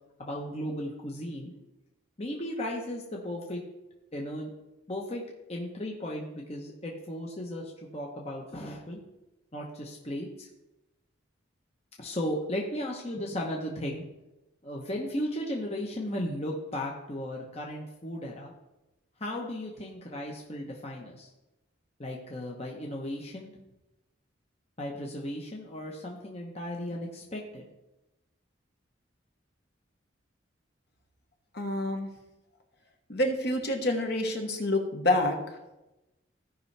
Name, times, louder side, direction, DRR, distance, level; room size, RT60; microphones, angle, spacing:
voice 1, 0.2-1.5 2.2-3.6 4.1-4.5 4.9-5.2 5.5-9.0 9.5-10.5 12.0-14.0 14.6-18.5 19.2-21.3 22.0-23.5 24.8-27.7, left 1 dB, 30° left, -1 dB, 1.0 m, -35 dB
voice 2, 31.5-32.1 33.1-35.4, left 1 dB, 55° left, 2 dB, 1.4 m, -27 dB
16.0 x 5.4 x 3.3 m, 0.98 s
head